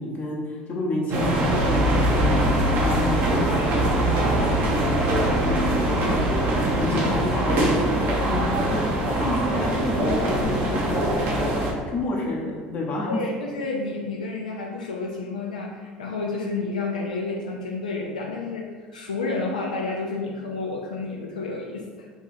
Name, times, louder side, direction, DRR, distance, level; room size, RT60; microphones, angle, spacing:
voice 1, 0.0-13.2, left 2 dB, 40° left, -4 dB, 0.7 m, -30 dB
sound 1, 1.1-11.7, right 1 dB, 55° right, 0.8 m, -22 dB
voice 2, 13.1-22.1, left 3 dB, 90° left, -1 dB, 0.3 m, -30 dB
2.9 x 2.4 x 4.1 m, 1.5 s
hypercardioid pair, 70°, 4 cm